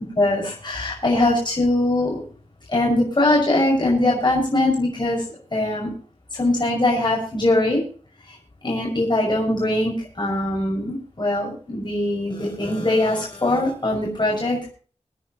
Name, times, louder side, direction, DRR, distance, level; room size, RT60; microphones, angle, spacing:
voice 1, 0.2-2.2 2.7-5.2 5.5-6.0 6.3-7.8 8.3-8.4 8.6-14.7, left 1 dB, 40° left, -2 dB, 5.9 m, -21 dB
25.0 x 9.6 x 3.0 m, 0.42 s
wide cardioid pair, 75°, 12 cm